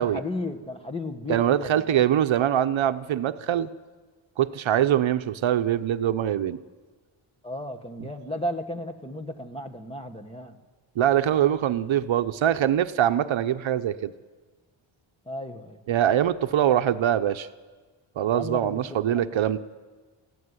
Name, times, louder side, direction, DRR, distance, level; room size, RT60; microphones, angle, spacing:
voice 1, 0.0-2.0 7.4-10.6 15.2-15.8 18.3-19.4, left 1 dB, 10° left, 5 dB, 1.3 m, -34 dB
voice 2, 1.3-3.7 4.4-6.6 11.0-14.1 15.9-17.5 18.2-19.6, right 10 dB, 65° right, 10 dB, 0.8 m, -23 dB
22.5 x 15.0 x 9.7 m, 1.4 s
wide cardioid pair, 160°, 50 cm